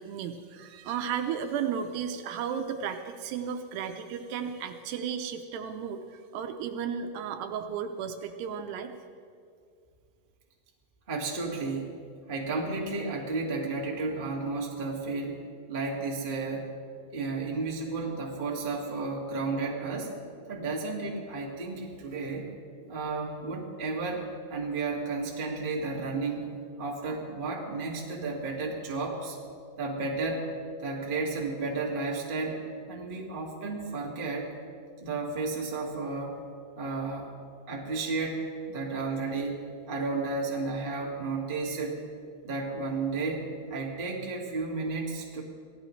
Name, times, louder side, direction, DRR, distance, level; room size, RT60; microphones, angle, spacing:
voice 1, 0.0-8.9, right 7 dB, 80° right, 6 dB, 2.6 m, -34 dB
voice 2, 11.1-11.9 12.3-16.6 17.1-20.1 20.5-22.5 22.9-24.2 24.5-26.5 26.8-29.4 29.8-30.5 30.8-32.6 32.9-34.5 35.0-36.4 36.8-37.3 37.7-42.0 42.4-45.4, right 3 dB, 40° right, -2 dB, 0.7 m, -32 dB
24.5 x 17.0 x 3.2 m, 2.2 s
omnidirectional pair, 5.1 m